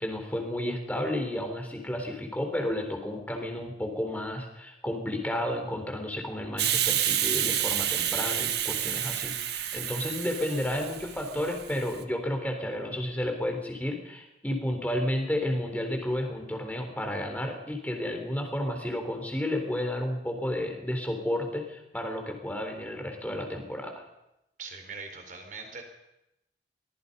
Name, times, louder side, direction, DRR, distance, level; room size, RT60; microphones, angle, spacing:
voice 1, 0.0-24.0, left 1 dB, 10° left, 3 dB, 3.9 m, -32 dB
Hiss, 6.6-11.9, right 11 dB, 65° right, 1.5 m, -29 dB
voice 2, 24.6-25.8, right 4 dB, 45° right, 4 dB, 4.2 m, -41 dB
24.5 x 20.0 x 5.5 m, 0.89 s
head